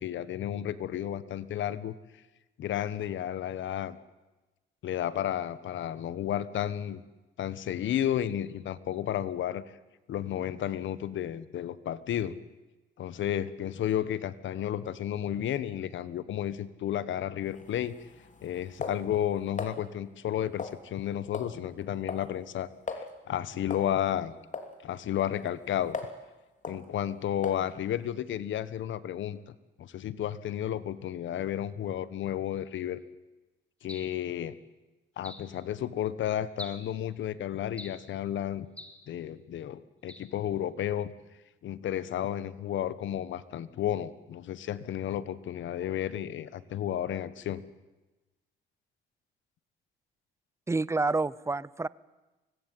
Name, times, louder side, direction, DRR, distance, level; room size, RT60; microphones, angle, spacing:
voice 1, 0.0-1.9 2.6-4.0 4.8-7.0 7.4-9.6 10.1-12.3 13.0-17.9 18.4-24.3 24.8-26.0 26.7-33.0 33.8-34.5 35.2-38.7 39.1-41.1 41.6-47.6, left 11 dB, 75° left, 16 dB, 1.4 m, -32 dB
sound 1, 17.5-19.8 20.6-21.0 21.3-21.6 21.8-22.3 22.6-22.7 22.9-23.1 23.7-23.9 24.5-24.7 25.2-26.2 26.6-26.8 27.4-27.7, left 4 dB, 40° left, 3.2 m, -39 dB
sound 2, 33.9-34.2 35.2-35.5 36.6-36.9 37.8-38.1 38.8-39.0 40.1-40.3, left 1 dB, 5° left, 3.0 m, -45 dB
voice 2, 50.7-51.9, right 3 dB, 15° right, 20 dB, 0.7 m, -28 dB
24.5 x 19.5 x 9.3 m, 1.1 s
cardioid pair, 90°, 20 cm